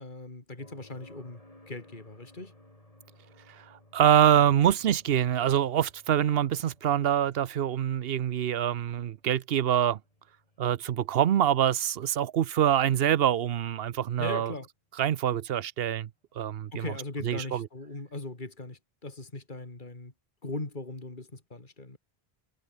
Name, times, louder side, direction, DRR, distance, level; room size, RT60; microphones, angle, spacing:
voice 1, 0.0-1.4 1.7-2.5 14.2-14.7 16.7-20.1 20.4-22.0, left 2 dB, 50° left, 3.3 m, -39 dB
sound 1, 0.6-14.4 16.7-16.8, left 1 dB, 35° left, 5.2 m, -59 dB
voice 2, 3.6-10.0 10.6-14.5 15.0-16.1 16.4-16.8 17.2-17.7, right 10 dB, 70° right, 0.9 m, -25 dB
omnidirectional pair, 1.0 m